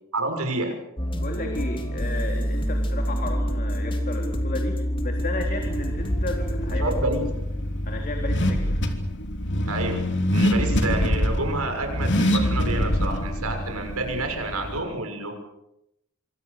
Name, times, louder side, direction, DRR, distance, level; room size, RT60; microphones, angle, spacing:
voice 1, 0.1-0.8 6.8-7.3 9.7-10.0 10.3-15.4, right 2 dB, 85° right, 5 dB, 6.3 m, -29 dB
sound 1, 1.0-7.2, equal, 25° left, 3.3 m, -27 dB
voice 2, 1.2-6.9 7.9-8.6, left 2 dB, 40° left, 3 dB, 3.6 m, -33 dB
Car / Accelerating revving vroom, 5.6-14.8, equal, 55° left, 3.2 m, -25 dB
27.0 x 25.0 x 6.7 m, 0.82 s
head